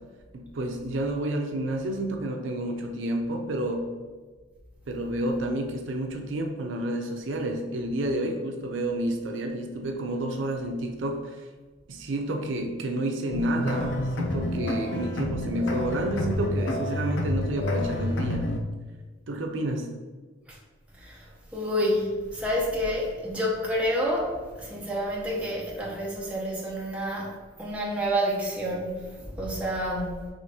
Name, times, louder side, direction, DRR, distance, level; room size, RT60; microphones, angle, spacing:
voice 1, 0.3-3.9 4.9-11.5 11.9-18.5 19.3-19.9, right 1 dB, 75° right, 3 dB, 0.5 m, -30 dB
sound 1, 13.3-18.6, left 1 dB, 65° left, 0.5 m, -29 dB
voice 2, 21.5-27.3 27.6-30.3, equal, 5° right, -4 dB, 0.7 m, -29 dB
5.0 x 3.1 x 2.7 m, 1.4 s
head